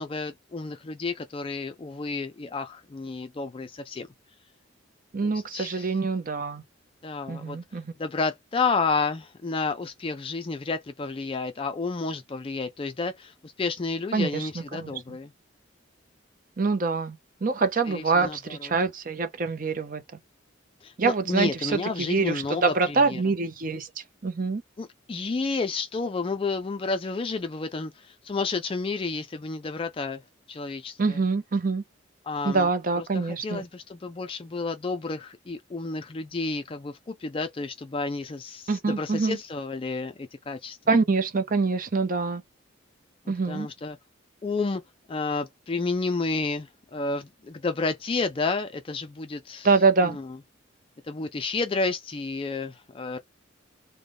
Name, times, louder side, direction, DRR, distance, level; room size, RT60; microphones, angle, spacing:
voice 1, 0.0-4.1 5.2-5.9 7.0-7.6 8.0-15.3 17.9-18.4 20.8-23.2 24.8-30.2 30.5-31.0 32.3-32.7 33.1-38.7 39.0-40.8 43.3-44.0 44.4-44.8 45.1-49.7 51.1-53.2, left 3 dB, 25° left, 0.3 m, -31 dB
voice 2, 5.1-6.6 7.3-7.9 14.1-15.2 16.6-20.0 21.0-24.6 31.0-31.8 32.4-33.6 38.7-39.4 40.9-42.4 43.3-43.7 49.6-50.2, right 4 dB, 45° right, 0.6 m, -25 dB
3.4 x 2.2 x 3.7 m
head